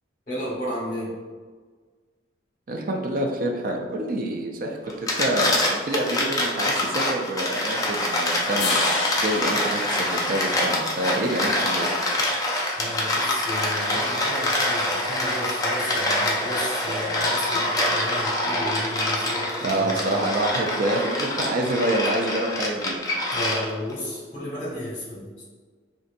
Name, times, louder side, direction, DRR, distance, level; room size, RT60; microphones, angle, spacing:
voice 1, 0.3-1.1 12.8-20.2 23.3-25.4, left 1 dB, 45° left, -5 dB, 1.3 m, -33 dB
voice 2, 2.7-8.8 9.2-11.9 19.6-23.0, right 1 dB, 45° right, 2 dB, 0.3 m, -27 dB
sound 1, 4.9-23.9, left 1 dB, 20° left, 0.4 m, -25 dB
sound 2, 8.6-10.9, left 4 dB, 65° left, 0.6 m, -31 dB
3.9 x 2.6 x 2.5 m, 1.5 s
head